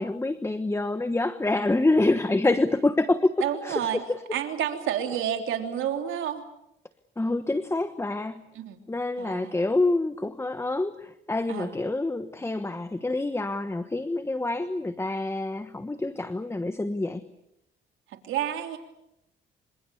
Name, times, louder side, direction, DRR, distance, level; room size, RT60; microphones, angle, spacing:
voice 1, 0.0-3.3 3.6-4.2 7.2-8.4 8.9-17.2, left 2 dB, 15° left, 11 dB, 1.2 m, -26 dB
voice 2, 3.4-4.0 4.3-6.4 8.5-8.8 9.2-9.5 11.5-11.8 18.1-18.8, right 10 dB, 80° right, 5 dB, 3.3 m, -30 dB
27.5 x 26.5 x 7.0 m, 0.83 s
cardioid pair, 90°, 20 cm